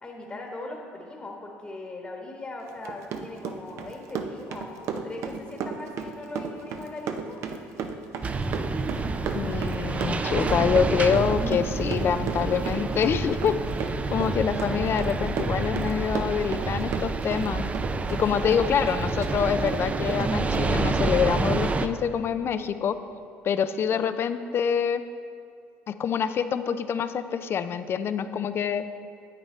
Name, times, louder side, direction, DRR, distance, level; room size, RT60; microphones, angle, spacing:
voice 1, 0.0-7.4 18.4-18.6, left 2 dB, 25° left, 0 dB, 1.3 m, -40 dB
Run, 2.7-17.5 17.7-19.3 19.7-19.8 20.1-20.2 20.5-20.6, right 6 dB, 65° right, 0.7 m, -34 dB
sound 1, 8.2-21.9, right 3 dB, 25° right, 0.4 m, -28 dB
voice 2, 9.3-13.5 14.1-17.6 18.1-23.0 23.4-25.0 25.9-28.8, left 7 dB, 45° left, 11 dB, 0.5 m, -26 dB
9.7 x 8.5 x 3.2 m, 2.4 s
supercardioid pair, 75°, 5 cm